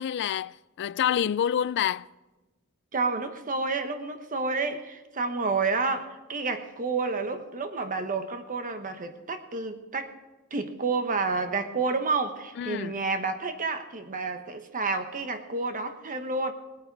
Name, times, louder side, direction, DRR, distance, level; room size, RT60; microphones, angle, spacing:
voice 1, 0.0-2.1 12.6-13.0, left 9 dB, 55° left, 0.3 m, -27 dB
voice 2, 2.9-10.1 10.5-16.5, right 4 dB, 40° right, 1.1 m, -30 dB
18.5 x 9.2 x 4.7 m
head